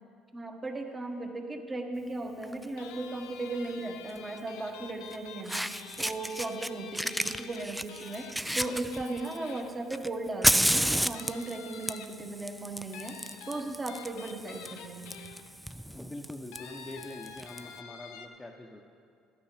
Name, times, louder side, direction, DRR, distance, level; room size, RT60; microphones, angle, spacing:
voice 1, 0.3-5.7 6.0-13.2 13.4-15.2, right 2 dB, 25° right, 4 dB, 1.4 m, -37 dB
Fire, 2.4-2.6 4.1-4.2 5.1-5.2 5.4-6.7 6.9-9.4 9.9-17.6, right 1 dB, 5° right, 0.4 m, -31 dB
sound 1, 2.8-10.2 10.6-10.8 11.1-12.4 12.9-15.7 16.5-18.3, left 7 dB, 75° left, 0.7 m, -48 dB
voice 2, 15.9-18.8, left 1 dB, 15° left, -2 dB, 0.9 m, -44 dB
12.0 x 8.6 x 5.0 m, 2.3 s
hypercardioid pair, 70°, 0 cm